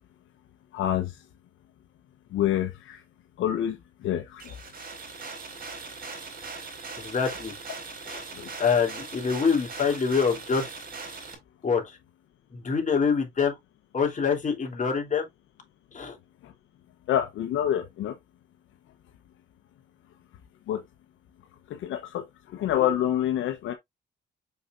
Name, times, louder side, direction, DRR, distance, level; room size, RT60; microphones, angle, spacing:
voice 1, 0.7-1.2 2.3-3.0 3.4-4.6 8.3-8.5 16.4-16.5 17.1-18.1 20.7-20.8 21.7-23.7, left 11 dB, 80° left, 1.0 m, -27 dB
sound 1, 4.4-11.3, right 4 dB, 50° right, 4.2 m, -40 dB
voice 2, 7.0-7.5 8.1-8.2 8.6-10.7 11.6-12.0 12.5-13.5 13.9-15.3 15.9-16.2, left 6 dB, 40° left, 3.3 m, -25 dB
7.0 x 5.7 x 2.5 m
cardioid pair, 90°, 20 cm